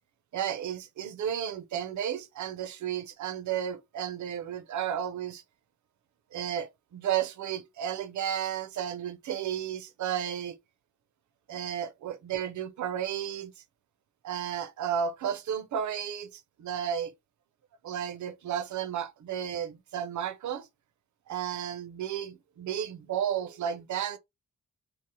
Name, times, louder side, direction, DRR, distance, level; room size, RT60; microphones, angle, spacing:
voice 1, 0.3-5.4 6.3-10.5 11.5-13.5 14.2-17.1 17.8-20.7 21.3-24.2, right 9 dB, 65° right, 0.5 m, -33 dB
2.9 x 2.0 x 2.9 m
wide cardioid pair, 135°, 32 cm